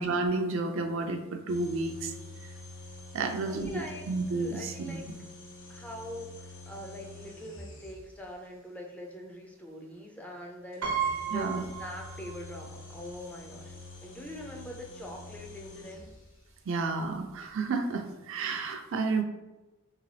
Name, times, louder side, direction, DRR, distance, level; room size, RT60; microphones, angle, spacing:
voice 1, 0.0-2.1 3.1-3.7 4.1-5.0 11.3-11.6 16.7-19.2, right 3 dB, 60° right, 5 dB, 0.4 m, -31 dB
sound 1, 1.5-8.4 10.7-16.5, left 2 dB, 55° left, 0.8 m, -47 dB
voice 2, 3.2-5.1 5.7-13.7 14.0-16.1, left 1 dB, 5° left, 0 dB, 0.4 m, -43 dB
Piano, 10.8-12.6 13.0-13.1 14.2-14.3 14.6-14.9, right 7 dB, 90° right, 0.9 m, -34 dB
3.8 x 3.0 x 3.2 m, 1.1 s
head